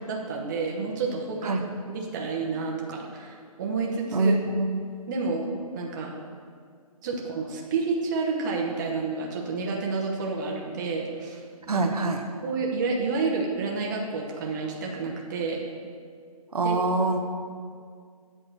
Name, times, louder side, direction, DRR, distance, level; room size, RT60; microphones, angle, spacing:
voice 1, 0.1-1.5 1.9-4.3 5.1-5.5 5.7-6.1 7.0-11.9 12.4-15.6 16.6-16.7, right 4 dB, 30° right, -1 dB, 1.0 m, -30 dB
voice 2, 4.1-4.8 11.7-12.2 16.5-17.2, right 3 dB, 80° right, 4 dB, 0.8 m, -24 dB
8.1 x 3.8 x 6.5 m, 2.1 s
hypercardioid pair, 150°, 19 cm